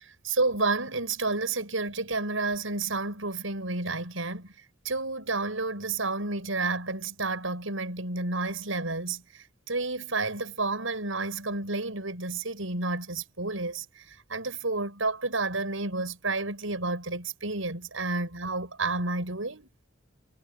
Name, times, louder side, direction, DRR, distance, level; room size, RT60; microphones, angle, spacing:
voice 1, 0.2-4.5 4.8-19.7, right 3 dB, 80° right, 7.4 m, -30 dB
head